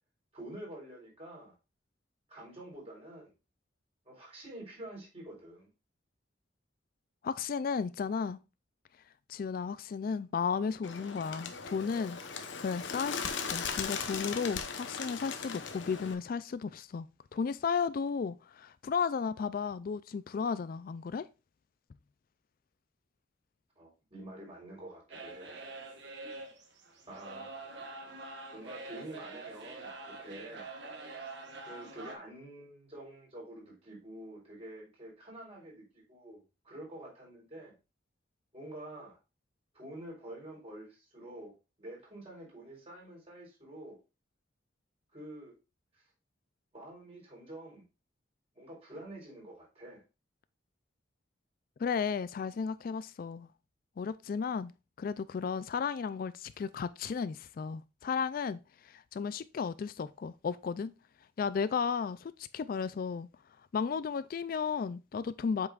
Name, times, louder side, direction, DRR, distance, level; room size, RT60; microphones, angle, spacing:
voice 1, 0.3-1.5 2.3-3.3 4.0-5.7 23.8-25.6 27.1-27.6 28.5-30.7 31.2-31.3 31.7-37.7 38.5-39.2 39.7-41.5 41.8-44.0 45.1-45.6 45.9-46.0 46.7-47.8 48.5-50.0, right 1 dB, 35° right, 3.9 m, -47 dB
voice 2, 7.2-8.4 9.3-12.2 12.6-17.1 17.3-21.3 51.8-53.5 54.0-54.7 55.0-60.9 61.4-63.3 63.7-65.7, left 6 dB, 50° left, 0.3 m, -34 dB
Bird, 10.8-16.1, left 6 dB, 85° left, 0.9 m, -38 dB
sound 1, 25.1-32.2, right 3 dB, 65° right, 1.4 m, -45 dB
7.8 x 5.6 x 2.4 m
head